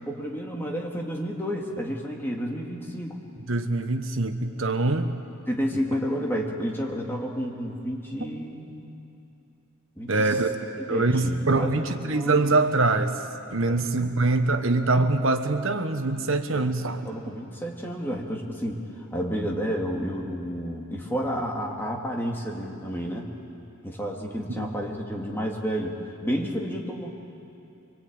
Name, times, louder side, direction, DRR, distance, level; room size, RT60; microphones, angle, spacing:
voice 1, 0.1-3.2 5.5-9.0 10.0-10.3 10.9-11.8 12.1-12.5 13.7-13.9 16.5-23.3 23.8-27.1, equal, 10° left, -1 dB, 2.2 m, -31 dB
voice 2, 3.5-5.1 10.1-10.5 10.9-13.2 13.5-17.0 24.6-24.7, right 3 dB, 65° right, 7 dB, 1.3 m, -24 dB
25.0 x 21.5 x 8.8 m, 2.8 s
head